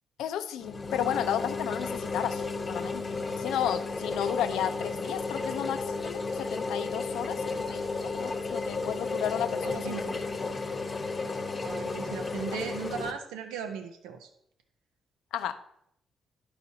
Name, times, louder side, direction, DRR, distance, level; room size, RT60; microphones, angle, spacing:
voice 1, 0.2-2.4 2.7-10.2 12.5-12.6 15.3-15.6, left 10 dB, 80° left, 9 dB, 0.5 m, -33 dB
sound 1, 0.6-13.1, left 3 dB, 40° left, 1.0 m, -33 dB
voice 2, 9.6-10.2 11.6-14.3, right 7 dB, 85° right, 7 dB, 0.7 m, -37 dB
11.0 x 4.9 x 2.8 m, 0.72 s
supercardioid pair, 55°, 0 cm